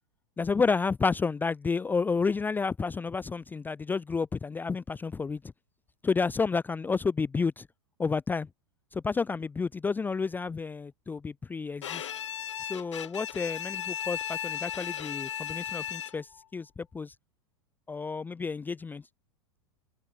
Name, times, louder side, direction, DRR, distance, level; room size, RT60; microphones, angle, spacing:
voice 1, 0.4-5.4 6.0-7.7 8.0-8.5 8.9-12.1 12.6-17.1 17.9-19.0, left 4 dB, 10° left, 0.5 m, -30 dB
Bowed string instrument, 11.8-16.4, left 10 dB, 75° left, 3.1 m, -36 dB
open air
hypercardioid pair, 100°, 15 cm